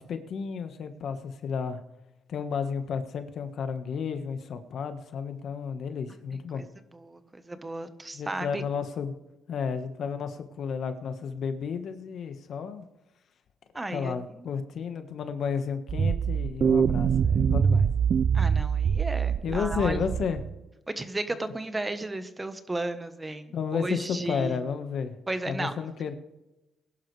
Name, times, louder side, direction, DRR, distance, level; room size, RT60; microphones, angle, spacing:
voice 1, 0.0-1.8 2.3-6.6 8.1-9.1 9.5-12.8 13.9-17.9 19.4-20.4 21.4-21.5 23.5-25.1 25.5-26.2, left 6 dB, 65° left, 8 dB, 1.5 m, -32 dB
voice 2, 6.9-8.6 13.7-14.5 18.3-20.0 20.9-24.6 25.3-25.7, right 2 dB, 15° right, 10 dB, 1.2 m, -34 dB
sound 1, 15.9-20.6, right 7 dB, 55° right, 0.4 m, -24 dB
20.5 x 11.5 x 3.4 m, 0.98 s
cardioid pair, 90°, 0 cm